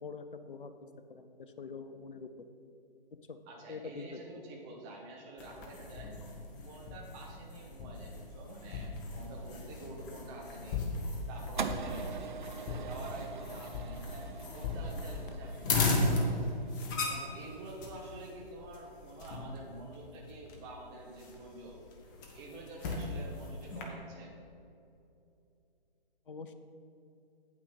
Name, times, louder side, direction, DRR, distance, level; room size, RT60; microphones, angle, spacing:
voice 1, 0.0-0.7 1.1-2.3 3.3-3.4 3.7-4.2 26.3-26.5, left 5 dB, 60° left, 9 dB, 0.7 m, -44 dB
voice 2, 3.5-6.1 6.6-8.9 9.1-10.9 11.3-16.5 17.0-21.8 22.3-24.3, right 2 dB, 10° right, -1 dB, 0.7 m, -48 dB
sound 1, 5.4-23.8, left 3 dB, 20° left, 1.0 m, -37 dB
sound 2, 11.6-17.9, right 5 dB, 55° right, 0.6 m, -43 dB
8.7 x 8.4 x 4.0 m, 2.7 s
figure-of-eight pair, 130°, 30 cm